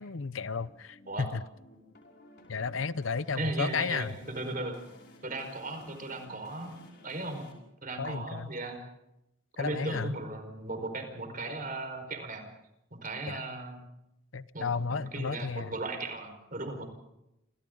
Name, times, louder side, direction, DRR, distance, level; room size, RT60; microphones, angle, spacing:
voice 1, 0.0-1.4 2.5-4.1 8.0-8.5 9.6-10.2 13.3-13.4 14.3-15.7, left 5 dB, 80° left, 16 dB, 0.7 m, -33 dB
sound 1, 0.7-7.5, left 2 dB, 55° left, 5.7 m, -56 dB
voice 2, 3.3-4.8 5.2-6.8 7.0-7.5 7.8-8.8 9.6-12.4 12.9-13.8 14.5-16.9, right 2 dB, 45° right, 6 dB, 4.8 m, -37 dB
28.5 x 27.5 x 3.9 m, 0.88 s
head